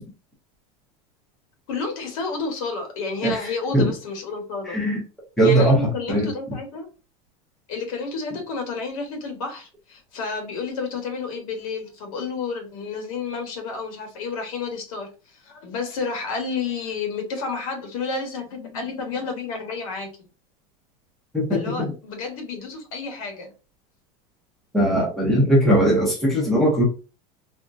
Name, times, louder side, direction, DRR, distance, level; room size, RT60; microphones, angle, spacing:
voice 1, 1.7-4.8 5.4-6.9 7.7-20.1 21.5-23.5, left 4 dB, 70° left, 1.1 m, -30 dB
voice 2, 4.7-5.0 5.4-5.8 6.1-6.3 21.3-21.9 24.7-26.8, right 1 dB, ahead, 0.6 m, -19 dB
3.5 x 2.1 x 2.5 m
supercardioid pair, 175°, 18 cm